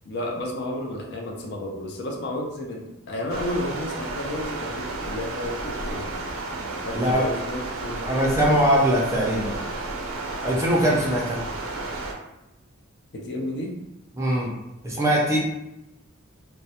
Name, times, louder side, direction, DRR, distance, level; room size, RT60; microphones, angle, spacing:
voice 1, 0.0-6.2 6.9-8.6 13.1-13.7, left 1 dB, 55° left, -1 dB, 0.4 m, -32 dB
Stream, 3.3-12.1, right 2 dB, 75° right, 0.4 m, -32 dB
voice 2, 6.9-7.3 8.1-9.5 10.4-11.4 14.2-14.5 14.8-15.4, right 1 dB, 15° right, -3 dB, 0.4 m, -21 dB
2.2 x 2.0 x 2.7 m, 0.93 s
head